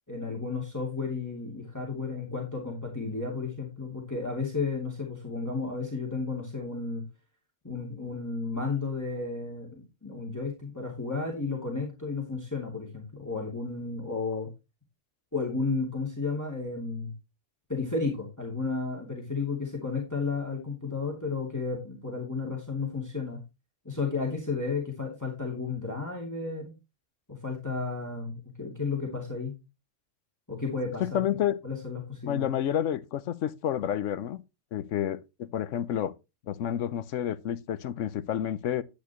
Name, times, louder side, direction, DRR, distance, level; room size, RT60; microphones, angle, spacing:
voice 1, 0.1-7.0 7.6-14.5 15.3-17.1 17.7-23.4 23.8-26.7 27.3-29.6 30.5-31.2 31.6-32.5, left 4 dB, 15° left, 2.6 m, -33 dB
voice 2, 31.0-31.6 32.3-34.4 34.7-36.1 36.5-38.8, left 10 dB, 90° left, 1.1 m, -29 dB
10.5 x 10.5 x 3.0 m
omnidirectional pair, 1.2 m